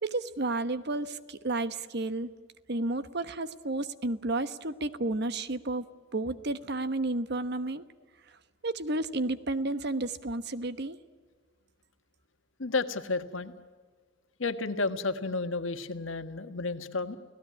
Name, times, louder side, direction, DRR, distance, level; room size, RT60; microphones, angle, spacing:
voice 1, 0.0-2.3 2.7-5.8 6.1-7.8 8.6-11.0, right 2 dB, 60° right, 12 dB, 1.2 m, -31 dB
voice 2, 12.6-13.5 14.4-17.2, left 3 dB, 85° left, 9 dB, 1.6 m, -32 dB
29.5 x 17.5 x 9.7 m, 1.5 s
head